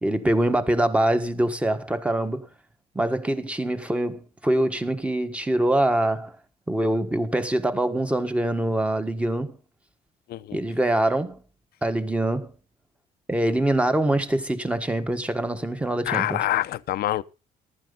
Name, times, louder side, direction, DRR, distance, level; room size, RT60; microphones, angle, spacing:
voice 1, 0.0-2.5 2.9-6.4 6.7-9.6 10.5-11.4 11.8-12.5 13.3-16.4, right 1 dB, 5° right, 1.5 m, -24 dB
voice 2, 10.3-10.6 16.1-17.2, left 14 dB, 65° left, 0.8 m, -26 dB
15.0 x 11.5 x 4.0 m
cardioid pair, 110°, 17 cm